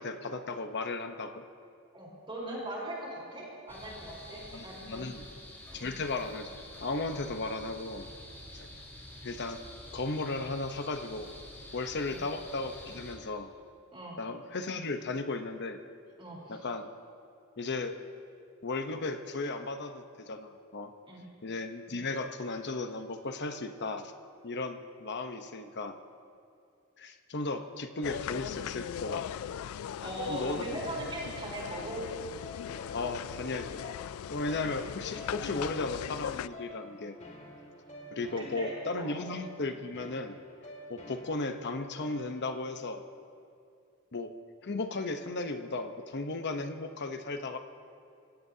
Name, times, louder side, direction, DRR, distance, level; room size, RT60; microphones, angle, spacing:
voice 1, 0.0-1.4 4.5-5.3 5.7-8.1 8.5-8.7 9.2-9.6 9.9-11.4 11.7-13.5 14.2-15.8 16.5-16.9 17.6-18.0 18.6-20.9 21.4-24.1 24.4-26.0 27.0-29.2 30.3-30.8 32.9-33.9 34.3-37.2 38.1-40.4 40.9-43.0 44.1-44.3 44.6-47.6, left 3 dB, 55° left, 7 dB, 0.9 m, -35 dB
voice 2, 1.9-5.1 5.7-5.9 12.0-12.2 13.9-14.2 16.2-16.6 21.1-21.3 30.0-32.0 38.4-39.2, right 1 dB, 25° right, -4 dB, 4.0 m, -40 dB
sound 1, 3.7-13.1, left 1 dB, 10° left, 3.7 m, -48 dB
sound 2, 28.0-36.5, left 9 dB, 85° left, 0.3 m, -39 dB
sound 3, 31.7-42.7, left 2 dB, 35° left, 2.3 m, -50 dB
27.0 x 16.5 x 2.8 m, 2.4 s
head